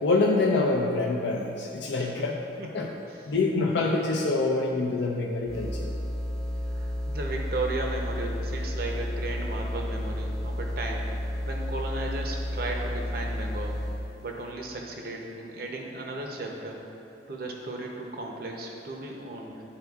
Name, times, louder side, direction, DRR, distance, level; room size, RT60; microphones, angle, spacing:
voice 1, 0.0-2.4 2.7-2.9 3.3-5.9, left 3 dB, 90° left, -2 dB, 0.5 m, -25 dB
voice 2, 2.6-3.2 6.7-11.1 11.5-13.8 14.2-16.8 17.3-19.6, right 2 dB, 55° right, 1 dB, 0.6 m, -35 dB
sound 1, 5.5-14.2, equal, ahead, 0.6 m, -32 dB
10.5 x 4.3 x 2.3 m, 2.8 s
head